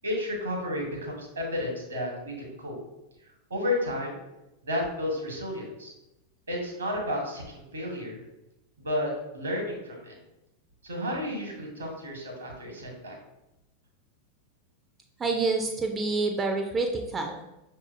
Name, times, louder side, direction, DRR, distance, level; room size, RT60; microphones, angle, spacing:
voice 1, 0.0-2.8 3.5-4.2 4.6-5.9 6.5-8.2 8.8-10.1 10.8-13.2, left 1 dB, 75° right, 1 dB, 1.2 m, -32 dB
voice 2, 15.2-17.4, right 3 dB, 20° right, 4 dB, 0.5 m, -27 dB
5.9 x 2.7 x 2.5 m, 0.92 s
figure-of-eight pair, 90°, 0 cm